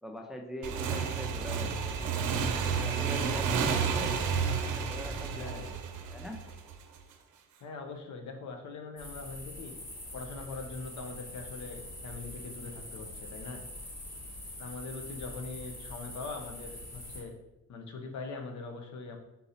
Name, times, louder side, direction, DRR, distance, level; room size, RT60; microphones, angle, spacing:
voice 1, 0.0-2.1 2.6-4.2 4.8-6.4, equal, ahead, 2 dB, 0.5 m, -43 dB
Motorcycle / Engine, 0.6-7.0, right 6 dB, 85° right, 0.6 m, -31 dB
voice 2, 3.4-3.8 5.3-5.7 7.6-9.8 10.1-13.6 14.6-17.3 17.7-19.2, left 4 dB, 70° left, 4 dB, 0.7 m, -42 dB
sound 1, 9.0-17.2, left 1 dB, 40° left, 1.5 m, -44 dB
3.9 x 2.7 x 4.1 m, 0.93 s
cardioid pair, 90°, 30 cm